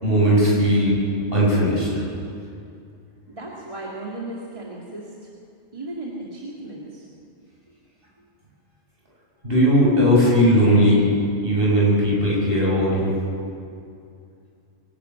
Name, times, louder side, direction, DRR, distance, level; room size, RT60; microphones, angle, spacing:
voice 1, 0.0-1.0 1.3-2.0 9.4-11.1 11.4-13.2, equal, 55° right, -5 dB, 7.2 m, -18 dB
voice 2, 3.3-5.1 5.7-7.1, right 2 dB, 30° right, -5 dB, 2.4 m, -35 dB
23.5 x 12.0 x 9.3 m, 2.5 s
omnidirectional pair, 1.2 m